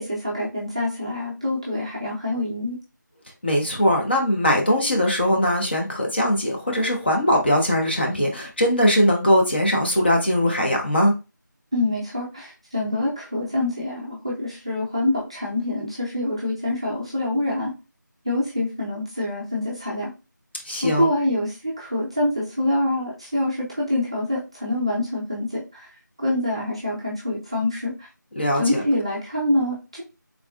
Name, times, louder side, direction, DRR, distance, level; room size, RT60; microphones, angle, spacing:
voice 1, 0.0-2.8 11.7-17.7 18.2-20.1 20.8-25.9 26.2-27.9 28.6-30.0, left 1 dB, 15° right, -5 dB, 0.5 m, -25 dB
voice 2, 3.4-11.1 20.7-21.1 28.4-28.8, equal, 30° left, 1 dB, 0.8 m, -20 dB
3.6 x 3.2 x 2.3 m, 0.28 s
figure-of-eight pair, 170°, 11 cm